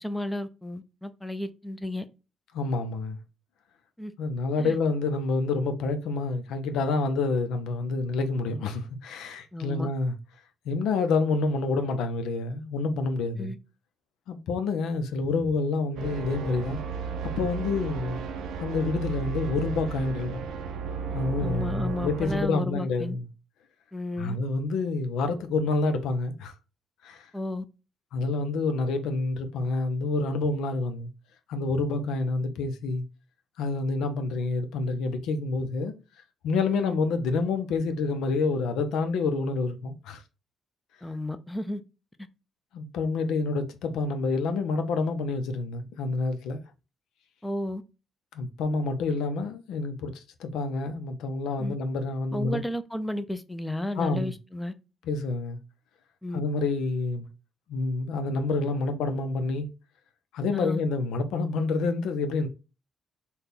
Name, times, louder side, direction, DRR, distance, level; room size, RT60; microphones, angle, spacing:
voice 1, 0.0-2.1 4.0-4.1 4.6-4.7 9.5-9.9 13.4-13.6 21.4-23.2 23.9-24.4 27.3-27.6 36.7-37.0 41.0-41.8 47.4-47.8 51.6-51.8 52.3-54.7 56.2-56.4 60.5-60.8, left 1 dB, 10° left, 0.5 m, -33 dB
voice 2, 2.5-3.2 4.2-10.2 10.7-13.5 14.3-16.8 17.2-18.2 18.6-20.5 21.1-23.3 24.2-26.5 27.0-27.3 28.1-31.1 31.5-33.0 33.6-35.9 36.4-40.2 42.7-46.6 48.3-52.6 54.0-54.3 55.1-55.6 56.3-57.3 57.7-59.7 60.3-62.5, left 3 dB, 85° left, 0.6 m, -28 dB
sound 1, 16.0-22.5, right 6 dB, 80° right, 0.5 m, -34 dB
4.1 x 2.3 x 3.4 m
cardioid pair, 90°, 0 cm